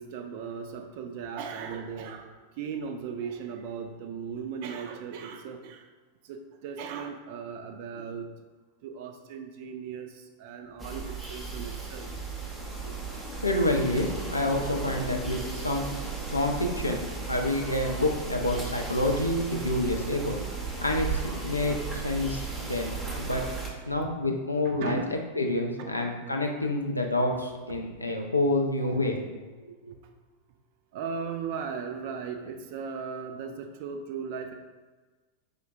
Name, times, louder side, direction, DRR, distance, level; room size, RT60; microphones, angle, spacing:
voice 1, 0.0-5.9 6.2-8.3 8.8-12.2 14.5-14.7 23.9-24.2 24.6-25.2 25.8-26.1 28.8-29.0 30.9-34.5, right 6 dB, 50° right, 5 dB, 0.3 m, -37 dB
sound 1, 10.8-23.7, right 4 dB, 10° right, 0.6 m, -35 dB
voice 2, 13.4-15.9 16.3-20.4 20.8-23.5 23.9-29.2 29.8-29.9, left 1 dB, 85° left, 2 dB, 0.4 m, -28 dB
4.8 x 2.1 x 2.6 m, 1.3 s
figure-of-eight pair, 90°, 0 cm